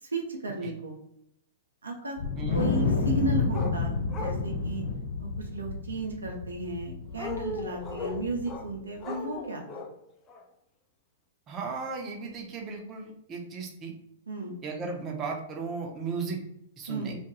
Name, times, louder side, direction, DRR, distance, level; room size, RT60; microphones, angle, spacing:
voice 1, 0.0-1.0 1.8-2.2 2.5-4.8 5.2-9.8 14.3-14.6 16.9-17.1, right 2 dB, 85° right, 1 dB, 0.5 m, -34 dB
Wind, 2.2-8.7, left 4 dB, 60° left, 0.9 m, -30 dB
sound 1, 3.5-3.7 4.1-4.4 7.1-8.7 9.0-9.9 10.3-10.4, left 3 dB, 30° left, 0.5 m, -37 dB
voice 2, 11.5-13.9 14.6-16.4 16.8-17.1, right 4 dB, 30° right, 1 dB, 0.6 m, -35 dB
2.4 x 2.2 x 2.8 m, 0.77 s
hypercardioid pair, 110°, 0 cm